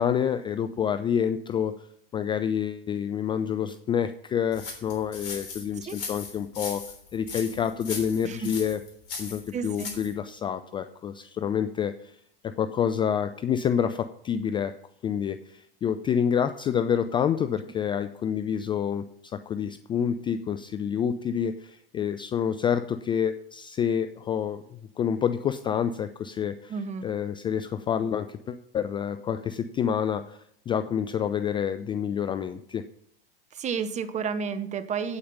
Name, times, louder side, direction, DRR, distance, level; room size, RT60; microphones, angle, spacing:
voice 1, 0.0-1.7 2.1-6.8 7.1-8.8 9.1-12.2 12.4-14.7 15.0-32.8, left 8 dB, 15° left, 11 dB, 0.4 m, -28 dB
sound 1, 4.5-10.1, left 4 dB, 65° left, 3.5 m, -38 dB
voice 2, 9.5-9.9 26.7-27.1 33.5-35.2, right 6 dB, 25° right, 12 dB, 0.9 m, -31 dB
8.8 x 8.5 x 5.3 m, 0.71 s
hypercardioid pair, 95°, 30 cm